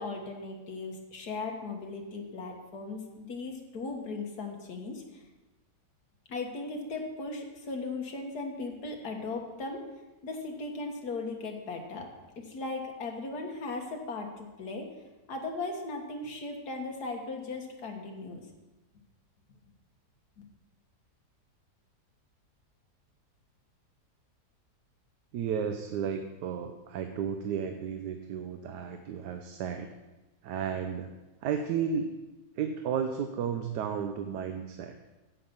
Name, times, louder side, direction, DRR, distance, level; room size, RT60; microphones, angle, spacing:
voice 1, 0.0-5.2 6.3-9.8 10.2-12.1 12.4-14.9 15.3-18.4, left 3 dB, 70° left, 2 dB, 1.9 m, -37 dB
voice 2, 25.3-29.9 30.4-31.1 31.4-32.1 32.6-34.9, right 7 dB, 85° right, 7 dB, 1.3 m, -33 dB
9.5 x 8.1 x 5.4 m, 1.1 s
omnidirectional pair, 1.7 m